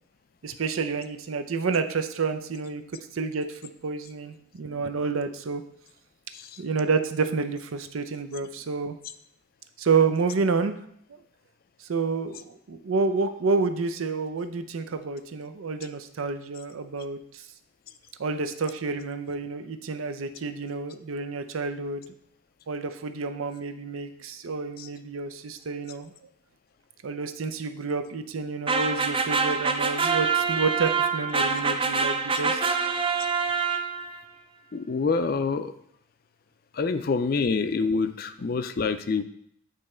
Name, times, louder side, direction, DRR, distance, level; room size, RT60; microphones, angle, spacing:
voice 1, 0.4-2.8 3.1-5.6 6.6-9.0 9.8-10.7 11.8-17.5 18.2-22.0 22.7-26.1 27.0-32.6, right 4 dB, 80° right, 9 dB, 0.5 m, -29 dB
sound 1, 28.7-34.2, right 5 dB, 25° right, 0.4 m, -25 dB
voice 2, 34.7-35.7 36.8-39.2, left 4 dB, 45° left, 10 dB, 0.4 m, -26 dB
8.5 x 3.2 x 4.3 m, 0.69 s
head